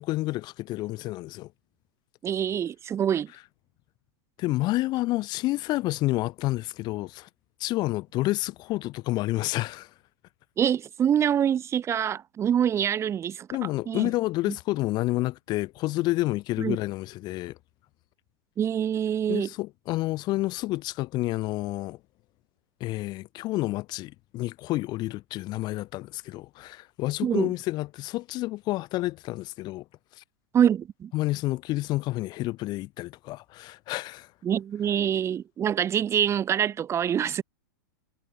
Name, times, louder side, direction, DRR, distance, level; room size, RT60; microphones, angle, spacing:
voice 1, 0.0-1.5 4.4-7.3 7.6-9.9 13.5-17.6 19.3-22.0 22.8-29.8 30.2-30.3 31.1-34.3, left 18 dB, 40° left, 4.2 m, -29 dB
voice 2, 2.2-3.3 10.6-13.5 13.9-14.1 14.5-14.6 16.6-16.8 18.6-19.5 27.2-27.5 30.5-31.1 34.4-37.4, right 9 dB, 25° right, 2.8 m, -25 dB
hypercardioid pair, 120°, 11 cm